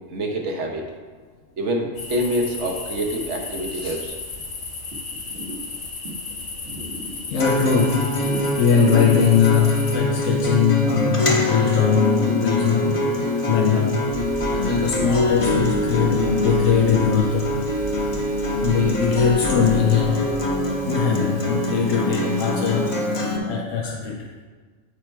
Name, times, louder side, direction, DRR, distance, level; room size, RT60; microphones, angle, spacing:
voice 1, 0.1-0.8 1.6-4.1 5.1-5.6 6.0-6.1 6.6-7.3 8.2-8.6 12.1-12.3 12.8-13.3 14.0-14.3 14.9-15.1 16.0-16.1 18.5-18.6 20.7-21.3 24.0-24.1, right 1 dB, 70° right, 2 dB, 1.3 m, -29 dB
sound 1, 2.0-10.0, left 4 dB, 70° left, 1.4 m, -34 dB
voice 2, 7.3-8.2 8.6-13.0 13.4-14.0 14.5-17.5 18.6-20.3 20.9-24.3, left 7 dB, 90° left, 0 dB, 1.0 m, -21 dB
Acoustic guitar, 7.4-23.4, left 1 dB, 30° left, 0.8 m, -24 dB
sound 2, 14.1-20.7, right 2 dB, 40° right, 1.2 m, -36 dB
7.2 x 4.4 x 4.5 m, 1.5 s
omnidirectional pair, 1.3 m